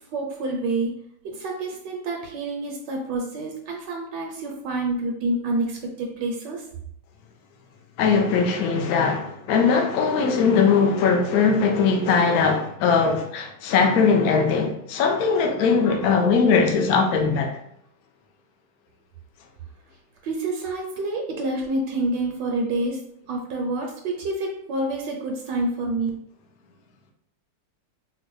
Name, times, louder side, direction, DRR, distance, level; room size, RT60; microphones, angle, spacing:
voice 1, 0.1-0.9 1.2-6.6 20.2-23.0 23.3-26.1, right 2 dB, 75° right, 1.2 m, -28 dB
voice 2, 8.0-17.5, left 5 dB, 70° left, 0.9 m, -20 dB
3.8 x 2.1 x 3.0 m
omnidirectional pair, 1.9 m